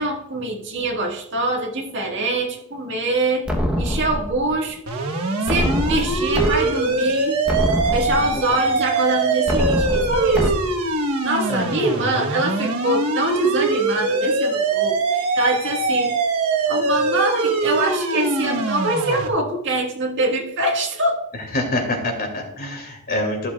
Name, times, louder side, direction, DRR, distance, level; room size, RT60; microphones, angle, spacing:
voice 1, 0.0-3.5 3.8-4.8 5.5-7.4 7.9-10.6 11.2-16.2 16.7-21.3, right 2 dB, 55° right, 1 dB, 1.8 m, -24 dB
sound 1, 3.5-4.5 5.5-6.5 7.0-7.1 7.5-8.5 9.5-10.5, equal, 5° right, 1.0 m, -24 dB
sound 2, 4.9-19.3, right 3 dB, 70° right, 1.2 m, -22 dB
voice 2, 8.1-8.6 11.5-11.7 21.5-23.5, left 1 dB, 45° left, 2 dB, 2.4 m, -26 dB
14.0 x 6.8 x 2.4 m, 0.79 s
head